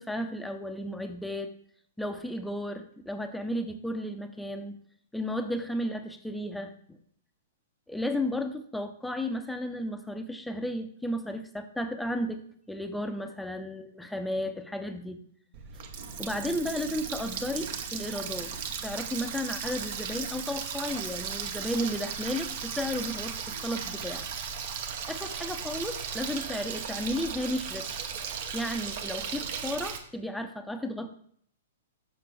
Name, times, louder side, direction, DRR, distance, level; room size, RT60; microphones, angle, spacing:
voice 1, 0.0-1.5 2.0-4.8 5.1-7.0 7.9-12.4 12.7-15.3 16.2-18.5 18.8-24.3 25.1-28.0 28.5-31.1, left 1 dB, 5° left, 7 dB, 0.6 m, -33 dB
Water tap faucet, 15.5-30.0, right 7 dB, 45° right, 0.8 m, -36 dB
6.6 x 5.8 x 3.4 m, 0.62 s
figure-of-eight pair, 110°, 0 cm